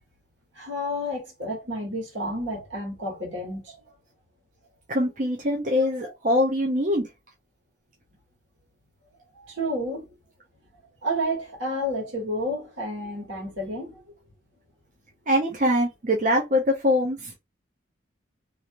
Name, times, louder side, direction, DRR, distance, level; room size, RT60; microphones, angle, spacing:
voice 1, 0.5-3.8 6.0-6.1 9.3-10.1 11.0-14.2, equal, 75° right, 1.6 m, -30 dB
voice 2, 4.9-7.1 15.3-17.3, left 1 dB, 40° right, 0.6 m, -23 dB
2.9 x 2.5 x 2.9 m
head